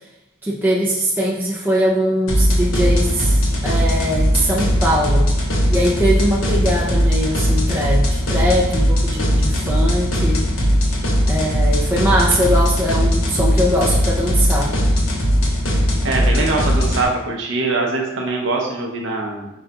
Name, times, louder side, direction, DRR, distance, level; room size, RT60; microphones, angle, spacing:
voice 1, 0.4-5.3 5.7-10.5 11.3-14.7, equal, 10° right, -4 dB, 0.4 m, -21 dB
sound 1, 2.3-17.0, equal, 65° left, 0.8 m, -18 dB
voice 2, 16.0-19.5, right 3 dB, 55° right, 0 dB, 0.7 m, -22 dB
5.3 x 2.3 x 3.9 m, 0.94 s
head